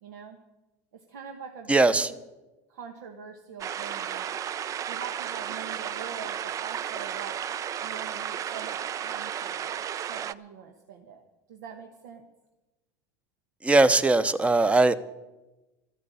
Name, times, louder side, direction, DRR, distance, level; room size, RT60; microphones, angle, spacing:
voice 1, 0.0-0.4 0.9-2.1 2.7-4.3 4.9-7.4 7.8-11.2 11.5-12.3, right 6 dB, 80° right, 5 dB, 1.3 m, -43 dB
voice 2, 1.7-2.1 13.6-14.9, right 2 dB, 15° right, 15 dB, 0.8 m, -20 dB
sound 1, 3.6-10.3, right 9 dB, 35° right, 0.4 m, -33 dB
13.0 x 9.6 x 8.4 m, 1.1 s
hypercardioid pair, 95°, 9 cm